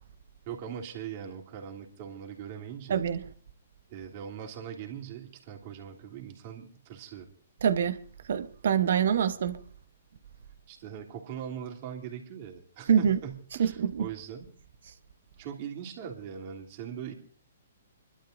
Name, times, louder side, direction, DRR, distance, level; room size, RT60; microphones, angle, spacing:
voice 1, 0.5-3.0 3.9-7.3 10.7-14.5 15.4-17.1, right 8 dB, 40° right, 3.0 m, -41 dB
voice 2, 2.9-3.2 7.6-8.0 8.3-9.6 12.9-13.2 13.6-14.1, right 8 dB, 65° right, 1.0 m, -25 dB
30.0 x 12.0 x 2.6 m
hypercardioid pair, 130°, 0 cm